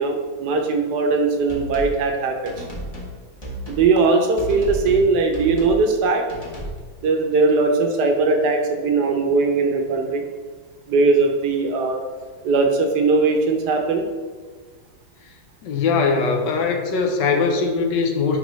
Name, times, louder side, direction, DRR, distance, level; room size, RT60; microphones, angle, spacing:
voice 1, 0.0-2.7 3.7-6.2 7.0-10.2 10.9-12.0 12.4-14.0, right 3 dB, 70° right, 4 dB, 1.2 m, -19 dB
sound 1, 1.5-2.0 2.5-3.1 3.4-3.9 4.4-5.1 5.3-5.8 6.3-6.8, equal, 25° left, 0.9 m, -32 dB
voice 2, 15.6-18.4, left 4 dB, 75° left, 4 dB, 1.3 m, -21 dB
9.7 x 3.3 x 3.1 m, 1.4 s
omnidirectional pair, 2.0 m